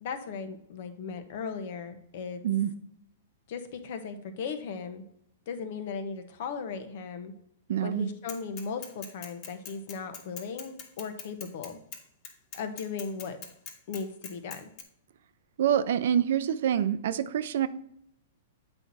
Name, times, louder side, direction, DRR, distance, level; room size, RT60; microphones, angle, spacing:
voice 1, 0.0-2.4 3.5-5.0 5.5-7.3 7.8-11.8 12.5-13.4 13.9-14.7, left 5 dB, 60° left, 8 dB, 1.1 m, -37 dB
voice 2, 7.7-8.1 15.6-17.7, right 9 dB, 65° right, 14 dB, 0.5 m, -26 dB
Bicycle / Mechanisms, 8.3-14.8, left 6 dB, 40° left, 1.5 m, -42 dB
8.0 x 4.5 x 4.1 m, 0.73 s
hypercardioid pair, 125°, 0 cm